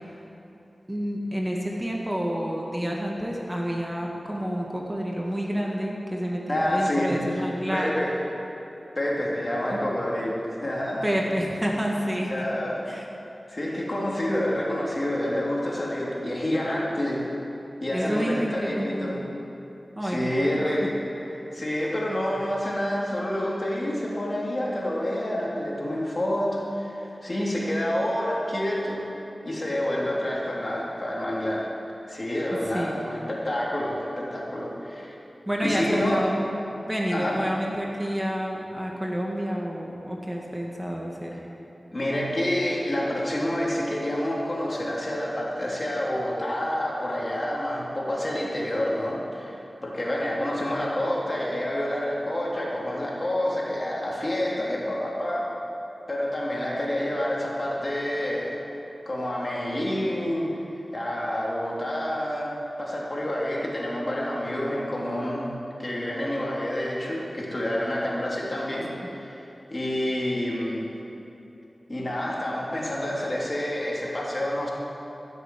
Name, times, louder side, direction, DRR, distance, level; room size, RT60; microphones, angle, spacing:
voice 1, 0.9-7.9 11.0-12.5 12.9-13.0 17.9-19.2 20.0-20.8 32.7-33.1 35.5-36.5 36.9-41.4, equal, 15° right, -2 dB, 2.1 m, -29 dB
voice 2, 6.5-7.4 7.7-8.1 8.9-11.0 12.3-12.9 13.5-17.2 17.8-19.2 20.0-21.0 21.5-29.0 29.4-31.7 32.1-35.2 35.6-36.2 37.1-37.5 41.9-55.6 56.1-58.6 59.0-60.6 60.9-65.5 65.8-69.4 69.7-70.9 71.9-74.7, left 1 dB, 45° left, -4 dB, 3.3 m, -28 dB
14.5 x 8.0 x 7.7 m, 3.0 s
cardioid pair, 40°, 0 cm